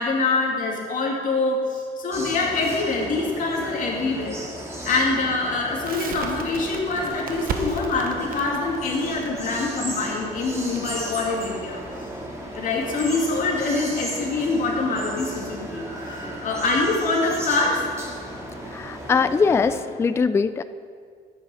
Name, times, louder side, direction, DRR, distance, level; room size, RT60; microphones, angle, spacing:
voice 1, 0.0-4.4 4.8-11.8 12.5-15.9 16.4-17.8, left 3 dB, 50° left, -1 dB, 2.4 m, -24 dB
sound 1, 2.1-19.8, right 1 dB, 15° right, 2.1 m, -35 dB
Crackle, 5.8-12.7, right 6 dB, 60° right, 1.0 m, -36 dB
voice 2, 18.7-20.6, left 5 dB, 15° left, 12 dB, 0.3 m, -21 dB
11.5 x 8.6 x 4.9 m, 2.1 s
cardioid pair, 110°, 17 cm